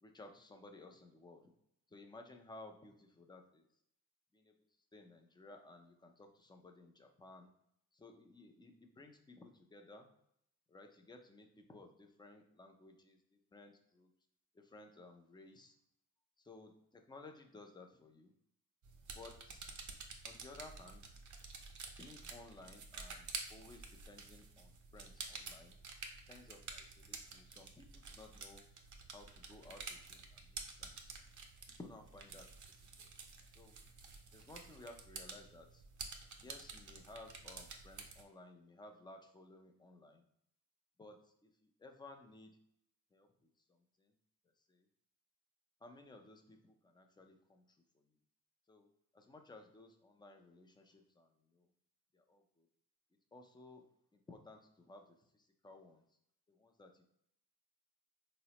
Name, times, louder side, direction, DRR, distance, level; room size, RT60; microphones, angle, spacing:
voice 1, 0.0-1.4 1.9-3.7 4.3-4.5 4.9-7.5 7.9-10.1 10.7-14.1 14.5-15.8 16.4-18.3 19.2-19.7 20.2-21.1 22.0-25.8 26.3-28.6 29.1-31.1 31.8-32.5 33.0-33.1 33.6-33.7 34.3-35.8 36.4-40.2 41.0-42.6 43.1-43.3 44.0-44.1 44.7-44.9 45.8-48.0 48.7-48.9 49.1-51.7 52.1-52.7 53.3-53.8 54.1-56.0 56.5-57.0, left 2 dB, 10° left, 4 dB, 0.3 m, -57 dB
sound 1, 18.8-38.2, right 4 dB, 50° right, 0.5 m, -50 dB
3.9 x 2.1 x 2.8 m, 0.73 s
cardioid pair, 80°, 39 cm